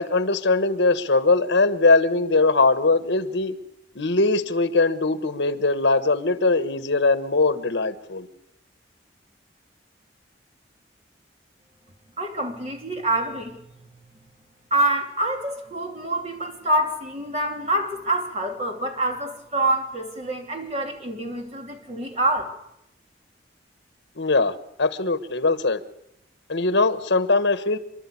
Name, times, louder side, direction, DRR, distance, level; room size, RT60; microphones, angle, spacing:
voice 1, 0.0-3.5 3.9-8.3 24.2-25.8 26.5-27.8, left 3 dB, 75° left, 11 dB, 1.2 m, -21 dB
voice 2, 12.2-13.6 14.7-22.5, right 1 dB, 35° right, 2 dB, 2.9 m, -26 dB
27.5 x 12.0 x 8.5 m, 0.86 s
head